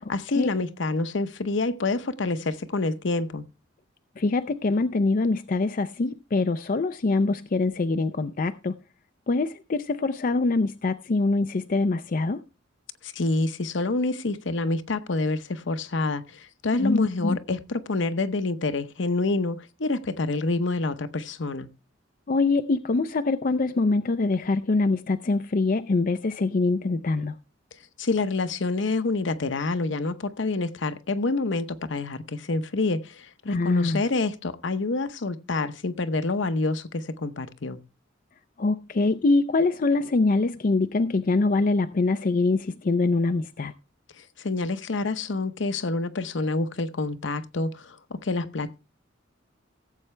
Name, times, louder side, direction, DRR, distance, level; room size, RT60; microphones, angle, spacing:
voice 1, 0.0-3.4 13.0-21.7 28.0-37.8 44.2-48.8, left 3 dB, 65° left, 0.8 m, -27 dB
voice 2, 4.2-8.8 9.3-12.4 16.7-17.4 22.3-27.4 33.5-34.0 38.6-43.7, left 3 dB, 45° left, 0.5 m, -24 dB
16.5 x 7.8 x 3.3 m
head